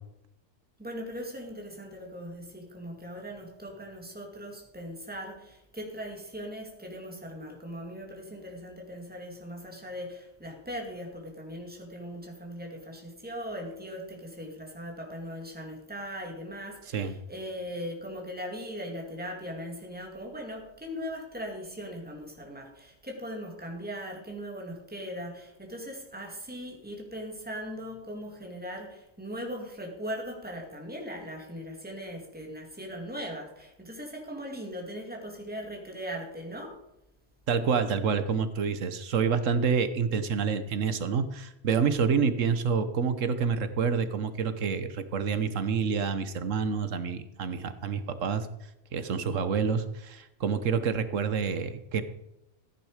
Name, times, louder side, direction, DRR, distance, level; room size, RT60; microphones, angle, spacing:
voice 1, 0.8-36.8, equal, 5° right, 0 dB, 2.5 m, -39 dB
voice 2, 37.5-48.5 48.9-52.0, right 6 dB, 85° right, 11 dB, 1.4 m, -28 dB
14.5 x 9.4 x 5.0 m, 0.86 s
omnidirectional pair, 1.3 m